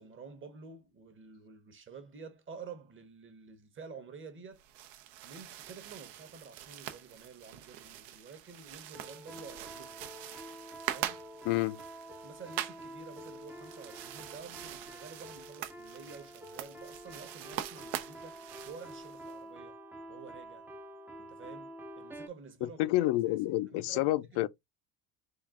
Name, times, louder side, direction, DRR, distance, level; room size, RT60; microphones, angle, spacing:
voice 1, 0.0-4.6 5.2-10.0 10.9-11.2 12.2-18.4 18.7-19.8 20.1-20.7 21.2-22.9 23.3-24.5, right 5 dB, 25° right, 0.9 m, -50 dB
sound 1, 4.5-19.4, right 12 dB, 75° right, 0.7 m, -44 dB
sound 2, 8.9-22.3, right 1 dB, 5° right, 0.4 m, -48 dB
voice 2, 11.5-11.8 22.6-24.5, left 17 dB, 65° left, 0.5 m, -29 dB
3.8 x 2.4 x 3.6 m
supercardioid pair, 105°, 46 cm